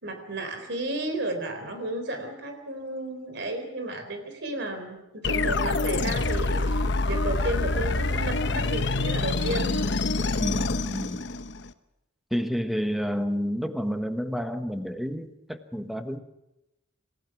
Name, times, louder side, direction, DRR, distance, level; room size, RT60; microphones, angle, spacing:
voice 1, 0.0-9.8, right 2 dB, 65° right, 6 dB, 4.0 m, -33 dB
sound 1, 5.2-11.7, left 3 dB, 65° left, 1.0 m, -26 dB
voice 2, 10.4-11.3 12.3-16.2, equal, ahead, 8 dB, 1.2 m, -30 dB
28.0 x 16.0 x 6.1 m, 0.92 s
head